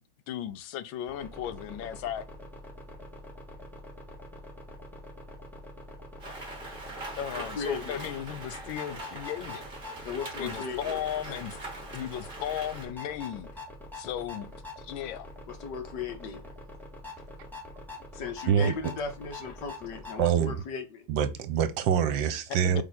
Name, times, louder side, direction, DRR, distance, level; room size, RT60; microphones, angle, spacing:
voice 1, 0.3-2.3 7.2-9.6 10.4-11.6 11.9-13.6 13.9-14.5 14.8-15.3 22.6-22.8, left 10 dB, 80° left, 1.5 m, -35 dB
Tractor Arpeggiator Synth, 1.1-20.3, left 1 dB, ahead, 2.1 m, -45 dB
Rain, 6.2-12.8, right 2 dB, 25° right, 1.9 m, -42 dB
voice 2, 7.3-8.1 10.0-11.0 15.5-16.5 18.1-21.1, left 5 dB, 65° left, 1.7 m, -36 dB
voice 3, 20.2-20.6 21.1-22.8, right 8 dB, 80° right, 1.5 m, -25 dB
8.1 x 3.8 x 4.1 m
omnidirectional pair, 2.1 m